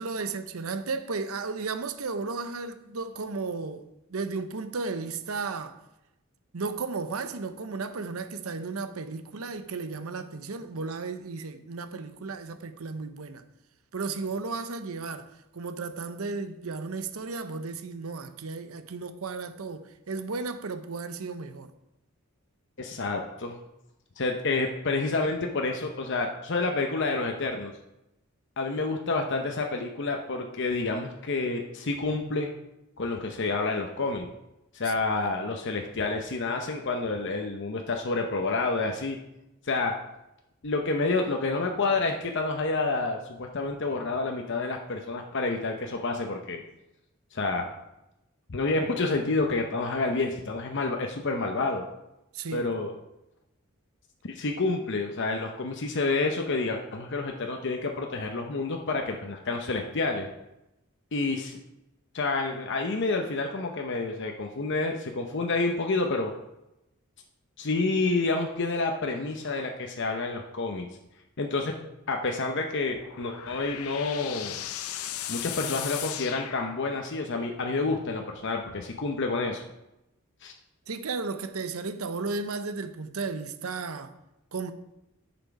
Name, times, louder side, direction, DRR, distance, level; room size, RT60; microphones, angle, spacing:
voice 1, 0.0-5.8 6.5-13.4 13.9-21.7 34.8-34.9 52.3-52.7 80.9-84.1 84.5-84.7, right 4 dB, 80° right, 0.7 m, -34 dB
voice 2, 22.8-23.6 24.2-27.7 28.6-32.5 33.0-34.3 34.7-39.2 39.6-39.9 40.6-46.6 47.3-47.7 48.5-51.9 52.5-52.9 54.2-60.3 61.1-61.6 62.1-66.3 67.6-70.9 71.4-71.7 72.1-74.6 75.3-79.6 80.4-80.5, left 3 dB, 55° left, 0.8 m, -29 dB
sound 1, 72.8-77.3, left 11 dB, 85° left, 0.6 m, -37 dB
10.0 x 6.1 x 4.8 m
head